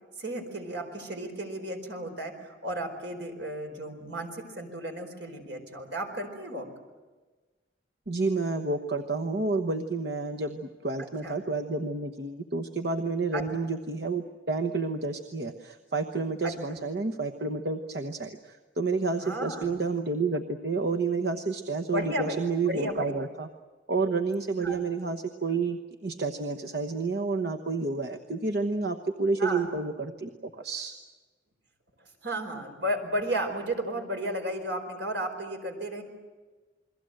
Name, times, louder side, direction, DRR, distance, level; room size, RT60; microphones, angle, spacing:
voice 1, 0.2-6.7 11.2-11.4 13.3-13.4 16.4-16.5 19.2-19.7 21.9-23.1 24.6-24.8 29.4-29.8 32.2-36.0, right 1 dB, 80° right, 5 dB, 4.7 m, -33 dB
voice 2, 8.1-23.5 23.9-30.9, right 3 dB, 60° right, 5 dB, 1.1 m, -30 dB
29.0 x 22.0 x 7.8 m, 1.3 s
head